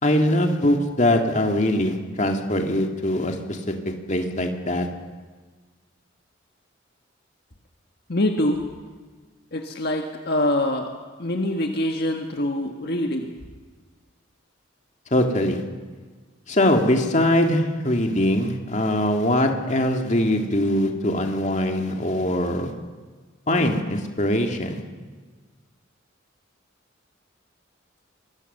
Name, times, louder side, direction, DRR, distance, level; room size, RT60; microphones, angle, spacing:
voice 1, 0.0-3.7 4.1-4.9 15.1-15.6 16.5-22.7 23.5-24.8, left 1 dB, 35° left, 4 dB, 2.1 m, -22 dB
voice 2, 8.1-8.6 9.5-10.9 11.2-13.3, left 1 dB, 55° left, 3 dB, 1.6 m, -24 dB
25.5 x 21.0 x 6.7 m, 1.4 s
head